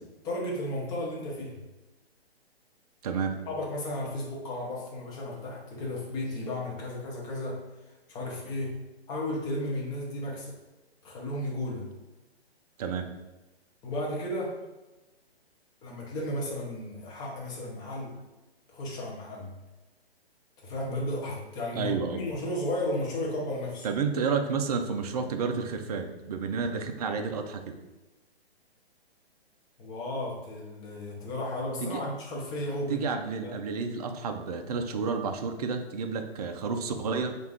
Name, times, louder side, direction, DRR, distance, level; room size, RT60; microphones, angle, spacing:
voice 1, 0.2-1.6 3.5-7.6 8.1-8.8 9.1-10.5 11.0-11.9 13.8-14.6 15.8-18.2 18.7-19.5 20.6-23.9 29.8-33.1 33.4-33.5, left 1 dB, 10° left, -2 dB, 0.6 m, -34 dB
voice 2, 3.0-3.4 12.8-13.1 21.7-22.2 23.8-27.8 31.8-32.0 32.9-37.4, right 5 dB, 40° right, 6 dB, 0.4 m, -30 dB
3.4 x 2.5 x 4.5 m, 1.1 s
figure-of-eight pair, 130°, 32 cm